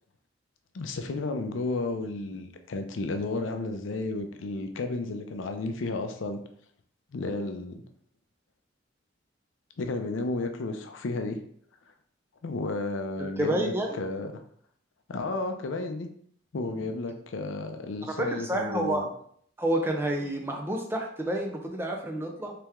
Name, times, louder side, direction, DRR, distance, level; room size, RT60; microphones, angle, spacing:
voice 1, 0.7-6.4 7.1-7.8 9.8-11.4 12.4-14.3 15.1-16.1 16.5-19.1, left 2 dB, 80° left, 6 dB, 0.5 m, -32 dB
voice 2, 13.2-14.0 18.2-19.1 19.6-22.5, right 1 dB, 10° right, 1 dB, 0.4 m, -29 dB
3.3 x 3.0 x 3.5 m, 0.63 s
head